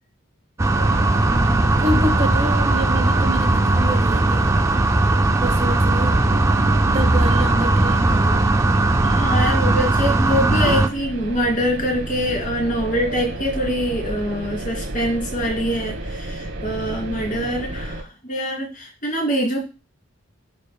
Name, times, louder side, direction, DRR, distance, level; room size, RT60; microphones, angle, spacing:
sound 1, 0.6-10.9, right 2 dB, 15° right, 0.4 m, -18 dB
sound 2, 0.7-18.0, right 1 dB, 60° right, 1.2 m, -32 dB
voice 1, 1.2-4.5 5.4-6.3 6.9-8.5 10.6-10.8, equal, 35° right, 5 dB, 0.9 m, -28 dB
voice 2, 9.0-19.6, equal, 40° left, 0 dB, 2.6 m, -24 dB
14.0 x 5.2 x 2.2 m, 0.32 s
head